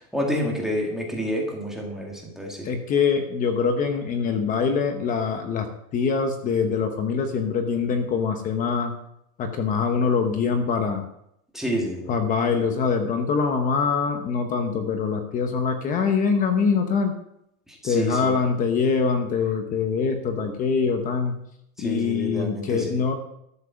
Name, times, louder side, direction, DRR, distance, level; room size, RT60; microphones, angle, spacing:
voice 1, 0.0-2.7 11.5-12.1 17.8-18.3 21.8-23.0, equal, ahead, -2 dB, 2.0 m, -28 dB
voice 2, 2.6-5.7 5.9-8.9 9.4-11.1 12.1-17.1 17.8-21.4 21.8-23.1, left 5 dB, 20° left, 6 dB, 0.9 m, -24 dB
12.5 x 7.5 x 6.9 m, 0.76 s
supercardioid pair, 170°, 44 cm